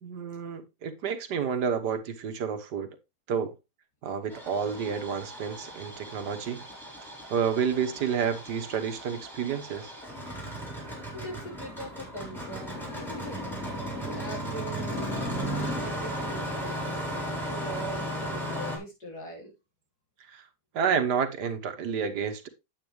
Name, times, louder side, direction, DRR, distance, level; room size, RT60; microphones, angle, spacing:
voice 1, 0.0-2.9 3.3-3.5 4.0-6.6 7.3-9.9 20.3-20.4 20.7-22.5, right 7 dB, 90° right, 1.8 m, -30 dB
Engine starting, 4.3-18.8, equal, ahead, 3.8 m, -36 dB
voice 2, 11.1-13.4 14.0-19.5, right 1 dB, 70° left, 4.7 m, -41 dB
9.0 x 8.2 x 3.1 m
omnidirectional pair, 1.7 m